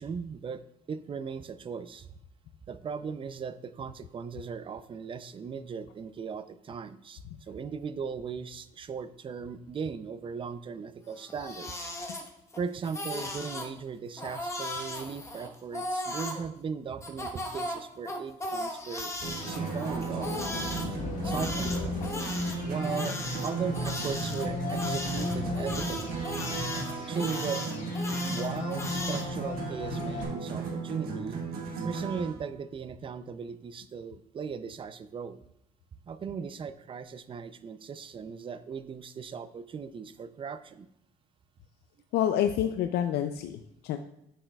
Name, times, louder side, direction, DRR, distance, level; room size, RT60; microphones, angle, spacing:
voice 1, 0.0-2.1 2.7-11.9 12.6-19.2 19.4-20.3 21.2-22.0 22.6-26.2 27.0-27.6 28.2-31.4 31.8-35.4 36.1-40.9, right 6 dB, 30° right, 13 dB, 0.4 m, -38 dB
Crying sobbing, 11.1-12.6 12.8-13.7 14.2-16.4 17.0-20.9 21.2-29.3, left 1 dB, 15° left, 1.1 m, -37 dB
sound 1, 19.2-30.2, left 2 dB, 50° left, 1.7 m, -37 dB
sound 2, 19.2-32.3, right 3 dB, 65° right, 1.3 m, -35 dB
voice 2, 42.1-44.0, left 10 dB, 75° left, 7 dB, 0.5 m, -28 dB
9.9 x 6.3 x 2.3 m, 0.80 s
cardioid pair, 110°, 17 cm